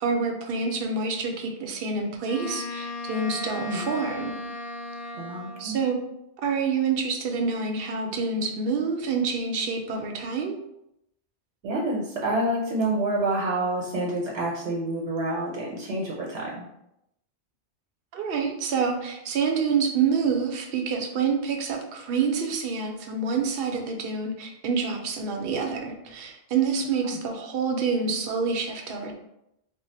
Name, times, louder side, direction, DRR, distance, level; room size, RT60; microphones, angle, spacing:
voice 1, 0.0-4.4 5.6-6.0 6.4-10.6 18.1-29.1, right 5 dB, 65° right, 3 dB, 0.7 m, -27 dB
Wind instrument woodwind instrument, 2.2-5.8, left 1 dB, 65° left, 0.7 m, -36 dB
voice 2, 5.1-5.8 11.6-16.7 27.0-27.1, right 1 dB, 85° right, -3 dB, 1.0 m, -28 dB
2.6 x 2.0 x 3.9 m, 0.82 s
omnidirectional pair, 1.1 m